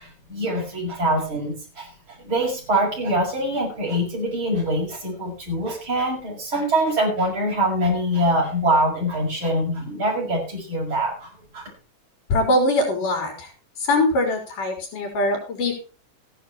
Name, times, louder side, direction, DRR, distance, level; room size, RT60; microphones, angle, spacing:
voice 1, 0.0-1.9 2.2-11.3 11.5-11.6, right 1 dB, 35° right, -1 dB, 6.7 m, -24 dB
voice 2, 12.3-13.5 13.8-15.8, left 1 dB, 75° left, 2 dB, 5.8 m, -22 dB
15.0 x 11.0 x 4.4 m, 0.34 s
omnidirectional pair, 3.7 m